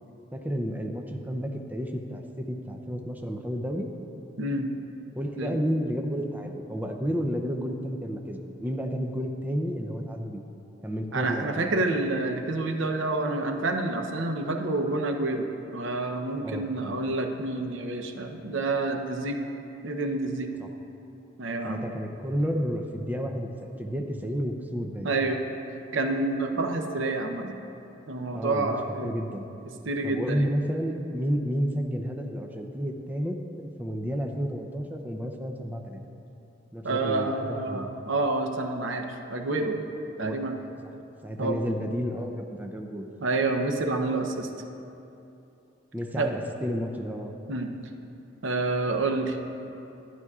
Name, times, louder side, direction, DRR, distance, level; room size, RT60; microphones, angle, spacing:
voice 1, 0.3-3.9 5.2-10.4 10.8-11.7 16.4-16.7 20.6-20.7 21.6-25.1 28.3-29.5 30.0-36.0 36.7-37.9 40.2-40.4 40.8-40.9 41.2-43.1 45.9-47.3, equal, 10° right, 3 dB, 0.5 m, -31 dB
voice 2, 4.4-4.7 5.4-5.6 11.1-19.4 19.8-20.5 21.4-21.9 25.0-25.4 25.9-27.6 28.1-29.1 29.8-30.5 36.8-39.8 40.2-40.6 41.4-41.6 43.2-44.5 46.2-46.3 47.5-47.7 48.4-49.4, right 2 dB, 85° right, 5 dB, 0.7 m, -28 dB
12.0 x 11.0 x 2.4 m, 2.8 s
head